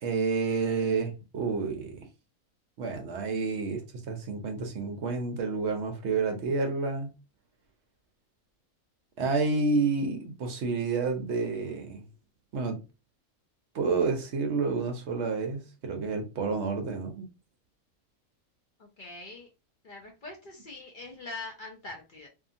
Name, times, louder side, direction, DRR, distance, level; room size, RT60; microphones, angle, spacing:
voice 1, 0.0-2.1 2.8-3.8 4.1-7.1 9.2-12.0 12.5-12.8 13.7-17.3, right 4 dB, 65° right, 0.7 m, -29 dB
voice 2, 18.8-19.5 19.8-22.3, left 2 dB, 60° left, 0.5 m, -43 dB
2.7 x 2.6 x 2.5 m
omnidirectional pair, 1.5 m